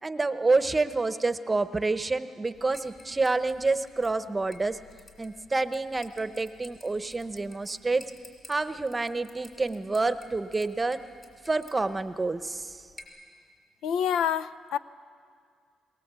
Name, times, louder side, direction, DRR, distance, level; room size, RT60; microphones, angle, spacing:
voice 1, 0.0-4.8 5.2-8.0 8.5-11.0 11.4-12.8, right 3 dB, 20° right, 12 dB, 0.9 m, -28 dB
sound 1, 2.5-13.0, left 2 dB, 20° left, 4.8 m, -54 dB
voice 2, 13.8-14.8, left 8 dB, 80° left, 16 dB, 0.5 m, -27 dB
21.5 x 19.0 x 8.2 m, 2.1 s
cardioid pair, 90°, 0 cm